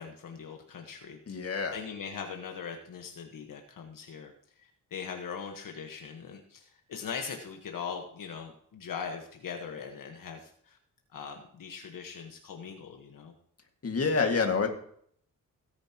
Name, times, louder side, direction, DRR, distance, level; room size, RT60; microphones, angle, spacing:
voice 1, 0.0-10.8 11.1-13.3, left 6 dB, 70° left, 3 dB, 1.4 m, -41 dB
voice 2, 1.3-1.8 13.8-14.7, left 4 dB, 45° left, 3 dB, 2.0 m, -27 dB
17.5 x 9.7 x 3.0 m, 0.64 s
cardioid pair, 100°, 34 cm